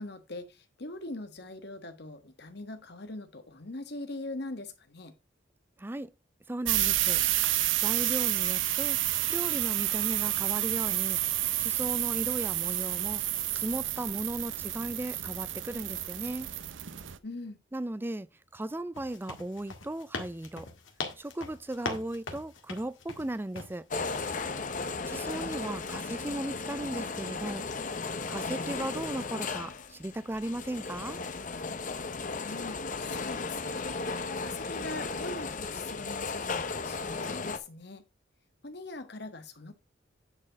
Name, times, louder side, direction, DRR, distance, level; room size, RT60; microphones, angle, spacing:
voice 1, 0.0-5.1 17.2-17.6 24.6-25.3 32.4-34.0 34.4-38.0 38.6-39.7, left 2 dB, 60° left, 1.5 m, -42 dB
voice 2, 5.8-6.1 6.5-7.2 7.8-11.2 11.6-13.2 13.5-16.5 17.7-18.3 18.5-20.7 21.2-23.8 25.1-27.6 28.3-31.2, right 1 dB, 10° right, 0.4 m, -36 dB
sound 1, 6.7-17.2, right 14 dB, 75° right, 0.7 m, -30 dB
sound 2, 18.9-23.8 24.1-24.4, left 3 dB, 90° left, 1.8 m, -40 dB
sound 3, 23.9-37.6, left 4 dB, 40° left, 0.8 m, -35 dB
9.8 x 4.4 x 5.0 m
head